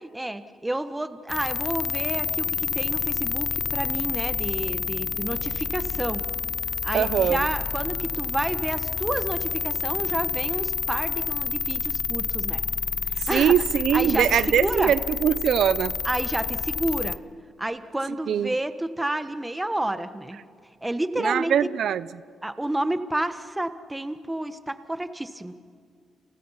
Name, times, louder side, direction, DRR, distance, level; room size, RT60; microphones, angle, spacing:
voice 1, 0.0-6.2 6.8-12.6 13.1-13.6 13.9-14.9 16.0-17.2 17.6-20.4 20.8-21.6 22.4-25.5, right 1 dB, 10° right, 10 dB, 1.3 m, -30 dB
sound 1, 1.3-17.2, left 5 dB, 40° left, 0.7 m, -29 dB
voice 2, 6.9-7.5 13.2-15.9 18.3-18.5 21.2-22.1, right 9 dB, 70° right, 16 dB, 0.6 m, -22 dB
29.5 x 28.5 x 5.8 m, 2.3 s
cardioid pair, 115°, 0 cm